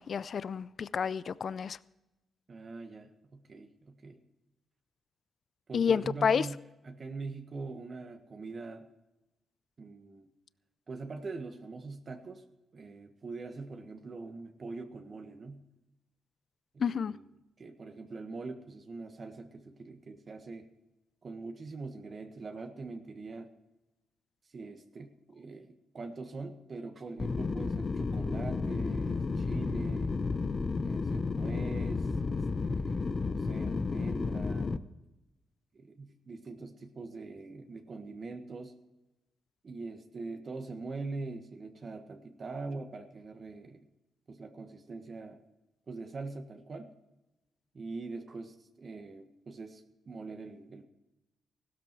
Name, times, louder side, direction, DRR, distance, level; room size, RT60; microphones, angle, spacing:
voice 1, 0.0-1.8 5.7-6.5 16.8-17.1, left 6 dB, 60° left, 18 dB, 0.4 m, -29 dB
voice 2, 2.5-4.2 5.7-6.6 6.8-8.9 9.8-10.3 10.9-12.4 12.7-15.6 16.7-17.3 17.6-20.7 21.2-23.5 24.5-30.1 30.8-34.7 35.7-38.7 39.6-43.9 44.3-45.4 45.9-46.9 47.7-50.8, right 3 dB, 50° right, 5 dB, 1.5 m, -43 dB
sound 1, 27.2-34.8, left 4 dB, 40° left, 0.8 m, -32 dB
16.0 x 13.0 x 4.6 m, 0.98 s
supercardioid pair, 60°, 0 cm